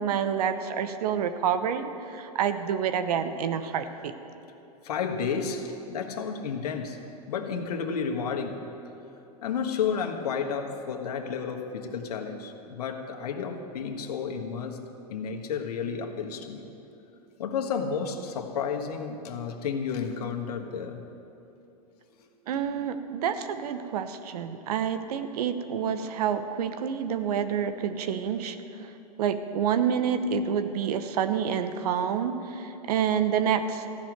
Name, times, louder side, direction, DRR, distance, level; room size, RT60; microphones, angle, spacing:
voice 1, 0.0-4.1 22.5-28.6 29.2-33.8, right 8 dB, 70° right, 10 dB, 1.0 m, -28 dB
voice 2, 4.8-7.0 7.3-8.6 9.4-14.8 15.1-16.7 17.4-21.0, left 6 dB, 75° left, 3 dB, 1.5 m, -31 dB
15.0 x 6.3 x 9.3 m, 2.9 s
hypercardioid pair, 120°, 20 cm